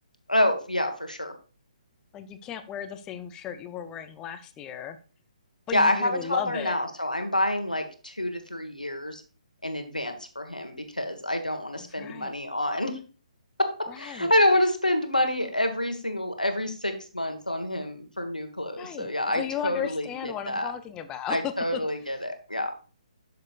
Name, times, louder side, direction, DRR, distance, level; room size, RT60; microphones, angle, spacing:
voice 1, 0.3-1.3 5.7-9.2 9.6-12.9 13.9-20.7 21.3-22.7, left 1 dB, 90° left, 5 dB, 1.5 m, -27 dB
voice 2, 2.1-5.0 5.7-6.7 11.8-12.3 13.9-14.3 18.8-21.8, left 9 dB, 15° left, 10 dB, 0.6 m, -35 dB
10.5 x 6.7 x 2.5 m, 0.37 s
figure-of-eight pair, 135°, 4 cm